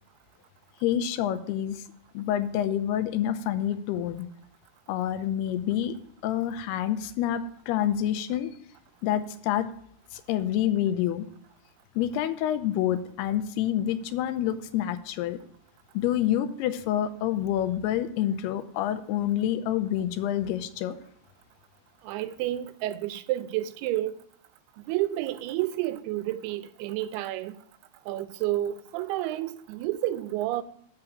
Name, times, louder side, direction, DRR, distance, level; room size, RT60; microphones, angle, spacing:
voice 1, 0.8-1.8 2.1-4.3 4.9-6.0 6.2-8.5 9.0-9.7 10.1-11.3 12.0-15.4 15.9-21.0, left 11 dB, 85° left, 2.6 m, -27 dB
voice 2, 22.0-24.2 24.9-27.5 28.1-30.6, right 14 dB, 85° right, 2.4 m, -30 dB
7.4 x 5.8 x 7.7 m
omnidirectional pair, 4.6 m